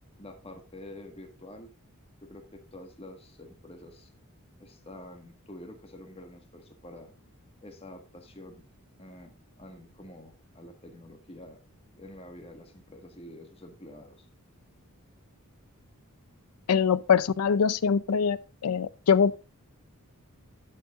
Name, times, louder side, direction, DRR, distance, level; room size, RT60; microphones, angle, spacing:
voice 1, 0.2-1.7 2.2-4.1 4.6-7.1 7.6-8.6 9.0-11.6 11.9-14.3, left 1 dB, 25° left, 1.6 m, -47 dB
voice 2, 16.7-18.4 18.6-19.3, left 6 dB, 90° left, 0.5 m, -23 dB
11.5 x 7.5 x 2.4 m
head